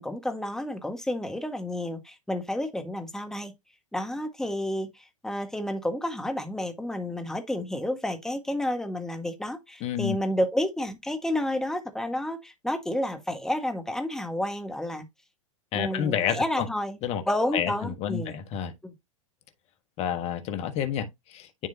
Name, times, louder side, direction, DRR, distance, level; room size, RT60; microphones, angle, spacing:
voice 1, 0.0-3.5 3.9-15.0 15.7-17.0 17.3-18.4 18.8-18.9, left 1 dB, 5° left, 1.5 m, -30 dB
voice 2, 9.8-10.2 15.7-16.7 17.0-17.2 17.5-18.7 20.0-21.7, left 9 dB, 40° left, 1.3 m, -29 dB
10.0 x 3.6 x 2.7 m
hypercardioid pair, 105°, 16 cm